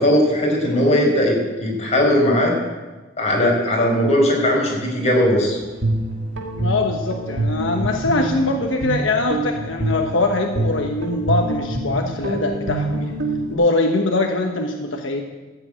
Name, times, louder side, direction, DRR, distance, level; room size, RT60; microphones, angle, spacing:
voice 1, 0.0-2.5 3.2-5.6, left 1 dB, 35° left, -2 dB, 5.0 m, -18 dB
Guitar, 5.6-13.5, right 2 dB, 70° right, 2.0 m, -26 dB
voice 2, 6.6-13.1 13.5-15.2, left 2 dB, 85° left, 3 dB, 1.2 m, -22 dB
14.0 x 8.0 x 8.9 m, 1.2 s
head